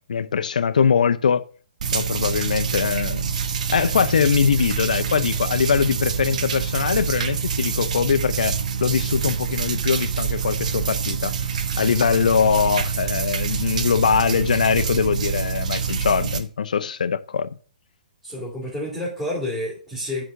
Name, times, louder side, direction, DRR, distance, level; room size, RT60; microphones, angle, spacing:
voice 1, 0.1-1.4 1.9-3.3 3.7-11.5 11.8-17.5, left 6 dB, 70° left, 0.6 m, -22 dB
sound 1, 1.8-16.4, right 7 dB, 60° right, 1.0 m, -26 dB
voice 2, 18.2-20.2, left 1 dB, ahead, 3.0 m, -29 dB
8.0 x 3.9 x 6.4 m
hypercardioid pair, 130°, 4 cm